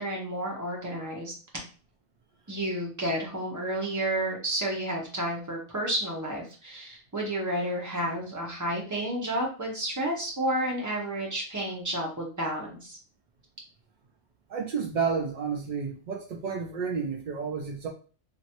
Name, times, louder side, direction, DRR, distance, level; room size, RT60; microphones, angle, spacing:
voice 1, 0.0-1.3 2.5-13.0, right 1 dB, 15° right, -2 dB, 0.8 m, -31 dB
voice 2, 14.5-17.9, right 5 dB, 80° right, 1 dB, 0.4 m, -31 dB
3.0 x 2.5 x 2.9 m, 0.38 s
omnidirectional pair, 1.3 m